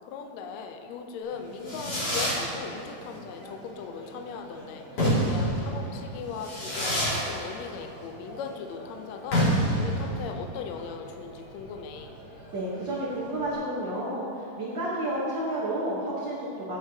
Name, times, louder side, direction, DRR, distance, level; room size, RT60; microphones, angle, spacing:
voice 1, 0.0-12.1, left 6 dB, 80° left, 4 dB, 1.5 m, -39 dB
Fireworks, 1.3-13.5, equal, 45° left, 3.1 m, -30 dB
voice 2, 12.5-14.3 14.6-16.8, right 1 dB, 85° right, -7 dB, 1.0 m, -30 dB
15.5 x 6.9 x 2.8 m, 2.6 s
omnidirectional pair, 3.9 m